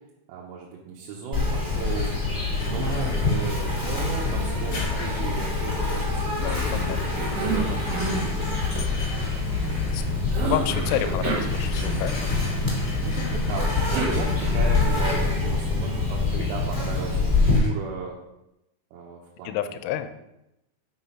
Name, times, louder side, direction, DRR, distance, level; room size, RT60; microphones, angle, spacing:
voice 1, 0.3-2.2 2.6-8.3 11.1-11.2 13.0-18.2 18.9-19.7, right 5 dB, 85° right, -4 dB, 3.5 m, -36 dB
Insect, 1.3-17.6, left 3 dB, 20° right, 0.5 m, -25 dB
sound 1, 1.8-5.5 6.3-15.6 17.4-17.7, left 2 dB, 35° left, 1.6 m, -40 dB
Cough, 2.6-3.5 3.8-5.8 6.4-8.3 10.3-12.3 13.5-14.9, right 4 dB, 65° right, 2.8 m, -31 dB
voice 2, 6.4-7.1 9.7-10.0 10.4-12.3 16.3-16.5 19.4-20.1, left 11 dB, 85° left, 10 dB, 2.8 m, -30 dB
6.2 x 6.2 x 5.6 m, 0.88 s
omnidirectional pair, 5.7 m